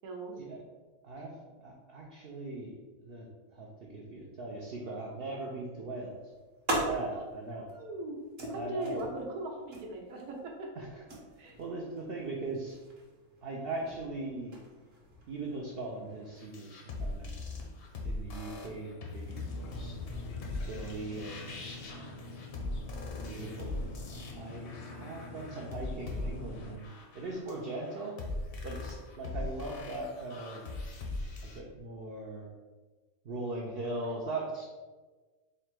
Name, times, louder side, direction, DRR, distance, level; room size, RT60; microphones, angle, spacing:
voice 1, 0.0-0.3 7.5-8.2 8.5-10.8 11.4-11.8, right 1 dB, 90° right, 1 dB, 1.3 m, -39 dB
voice 2, 1.6-2.7 3.0-6.2 6.7-7.7 8.5-9.0 10.8-11.0 11.4-12.8 13.4-14.6 15.3-17.3 18.0-19.9 20.7-22.2 23.2-23.8 24.3-28.2 28.6-30.6 31.4-32.5 33.2-34.6, right 2 dB, 70° right, -1 dB, 0.5 m, -40 dB
sound 1, 5.9-16.4, right 1 dB, 50° right, 1.0 m, -42 dB
sound 2, 16.4-31.6, left 2 dB, 55° left, 0.7 m, -40 dB
sound 3, 19.3-26.8, left 2 dB, 75° left, 1.0 m, -46 dB
3.8 x 2.2 x 4.4 m, 1.3 s
omnidirectional pair, 1.5 m